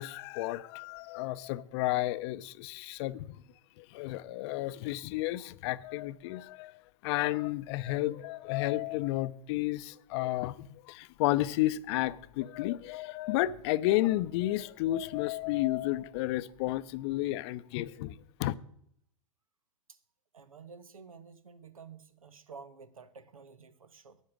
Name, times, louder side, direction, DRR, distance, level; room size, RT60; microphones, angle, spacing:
voice 1, 0.0-3.4 3.8-6.7 7.0-18.5, left 16 dB, 50° left, 0.6 m, -32 dB
voice 2, 20.3-24.2, right 5 dB, 90° right, 1.0 m, -51 dB
12.0 x 9.1 x 6.1 m
hypercardioid pair, 105°, 17 cm